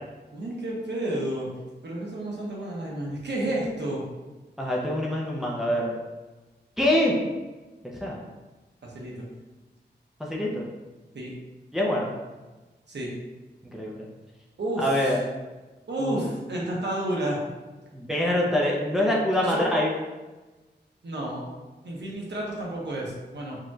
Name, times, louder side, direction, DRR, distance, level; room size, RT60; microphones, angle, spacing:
voice 1, 0.3-1.5 1.8-4.0 8.8-9.3 11.1-11.3 12.9-13.1 14.6-15.2 15.9-17.4 19.3-19.7 21.0-21.5 21.8-23.6, right 1 dB, 75° right, -3 dB, 1.0 m, -31 dB
voice 2, 4.6-5.9 6.8-7.1 8.0-8.2 10.2-10.7 11.7-12.1 13.6-14.1 14.8-15.2 16.0-16.2 17.9-19.9, left 1 dB, ahead, -3 dB, 0.6 m, -25 dB
4.9 x 2.9 x 2.3 m, 1.2 s
wide cardioid pair, 90°, 18 cm